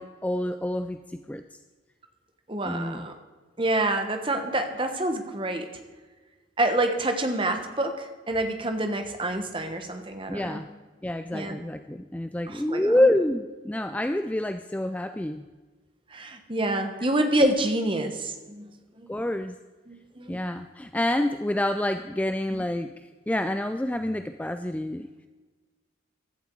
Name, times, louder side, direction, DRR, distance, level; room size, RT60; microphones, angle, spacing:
voice 1, 0.0-1.4 2.6-3.1 10.3-10.7 11.0-15.5 19.1-19.6 20.3-25.3, left 1 dB, 5° left, 9 dB, 0.3 m, -27 dB
voice 2, 2.5-3.1 3.6-5.7 6.6-10.6 11.3-11.6 12.5-13.1 16.1-18.7 19.0-19.1 19.9-20.4 22.5-22.6, right 1 dB, 25° right, 6 dB, 1.3 m, -27 dB
15.5 x 12.0 x 4.7 m, 1.3 s
head